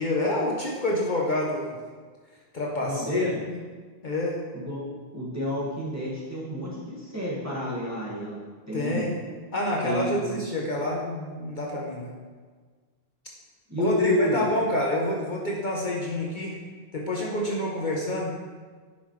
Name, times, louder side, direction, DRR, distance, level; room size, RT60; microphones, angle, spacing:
voice 1, 0.0-1.8 2.5-3.6 4.0-4.4 8.7-9.1 9.5-12.2 13.8-16.6 16.9-18.3, left 1 dB, 50° left, -2 dB, 1.0 m, -28 dB
voice 2, 2.8-3.4 4.5-4.8 5.1-8.4 8.7-9.2 9.8-10.4 13.7-14.5, left 1 dB, 15° right, -7 dB, 1.9 m, -29 dB
9.8 x 5.6 x 3.2 m, 1.5 s
omnidirectional pair, 1.1 m